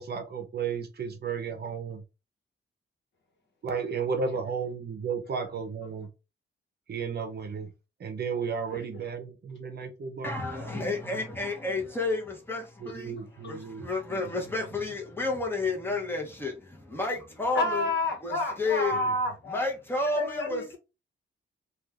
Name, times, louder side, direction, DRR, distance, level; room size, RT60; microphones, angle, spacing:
voice 1, 0.0-2.0 3.6-6.1 6.9-7.7 8.0-11.2 12.8-13.9, right 5 dB, 50° right, 0.7 m, -34 dB
voice 2, 10.2-13.2 13.5-17.9 18.2-19.0 19.5-20.8, left 3 dB, 10° left, 0.9 m, -31 dB
voice 3, 17.5-19.6 20.1-20.8, left 1 dB, 60° left, 1.1 m, -29 dB
2.5 x 2.4 x 3.3 m
wide cardioid pair, 115°, 21 cm